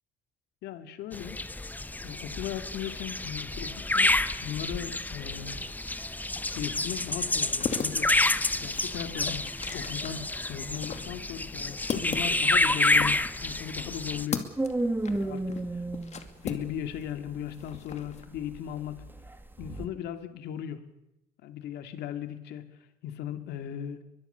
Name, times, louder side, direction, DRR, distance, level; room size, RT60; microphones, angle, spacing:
voice 1, 0.6-1.4 2.0-5.6 6.5-8.1 8.6-9.4 9.7-14.5 15.1-15.8 16.4-19.0 19.6-20.8 21.4-22.7 23.0-24.0, left 10 dB, 80° left, 9 dB, 2.3 m, -37 dB
sound 1, 1.1-14.3, left 2 dB, 10° left, 0.9 m, -29 dB
sound 2, 7.4-17.1 17.4-18.3, left 6 dB, 40° left, 2.5 m, -38 dB
sound 3, 14.6-19.9, right 2 dB, 10° right, 2.3 m, -32 dB
23.0 x 21.5 x 6.9 m, 0.83 s
cardioid pair, 110°, 17 cm